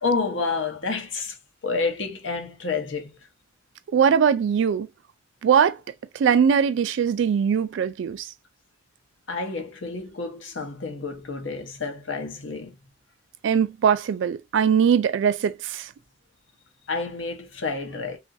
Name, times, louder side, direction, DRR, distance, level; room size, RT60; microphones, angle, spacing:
voice 1, 0.0-1.3 1.6-3.1 9.3-12.7 16.9-18.2, left 4 dB, 80° left, 0.8 m, -29 dB
voice 2, 3.9-4.9 5.4-5.8 6.2-8.3 13.4-15.8, right 7 dB, 70° right, 0.3 m, -21 dB
2.9 x 2.4 x 2.6 m
head